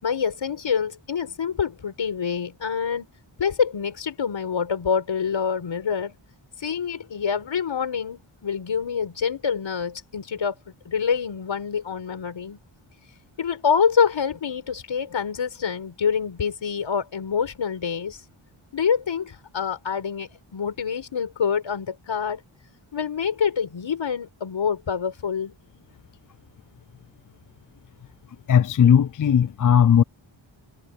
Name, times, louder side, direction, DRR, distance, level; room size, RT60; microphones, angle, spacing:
voice 1, 0.0-3.1 3.4-6.1 6.6-10.5 10.9-12.6 13.4-18.2 18.7-22.4 22.9-25.5, left 6 dB, 70° left, 5.6 m, -26 dB
voice 2, 28.5-30.0, left 8 dB, 45° left, 0.4 m, -17 dB
wide cardioid pair, 175°, 47 cm